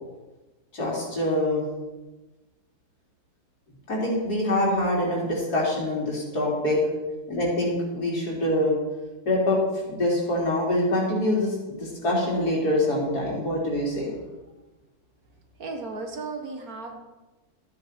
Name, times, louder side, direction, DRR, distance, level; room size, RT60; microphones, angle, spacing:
voice 1, 0.7-1.6 3.9-6.8 7.3-8.7 9.3-9.6 9.9-14.1, left 1 dB, 80° left, -4 dB, 3.9 m, -25 dB
voice 2, 15.6-17.0, right 3 dB, 65° right, 3 dB, 2.0 m, -35 dB
13.5 x 8.8 x 4.4 m, 1.1 s
omnidirectional pair, 1.7 m